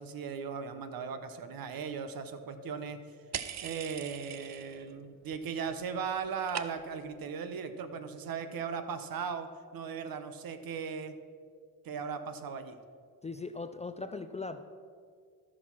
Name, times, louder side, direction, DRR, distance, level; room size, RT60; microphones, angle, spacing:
voice 1, 0.0-3.0 3.6-11.2 11.8-12.8, right 6 dB, 65° right, 10 dB, 0.9 m, -38 dB
sound 1, 3.3-4.9 5.2-5.8 6.0-7.1, right 9 dB, 45° right, 0.6 m, -41 dB
voice 2, 13.2-14.6, left 3 dB, 20° left, 9 dB, 0.3 m, -39 dB
13.0 x 6.2 x 6.0 m, 2.2 s
cardioid pair, 120°, 38 cm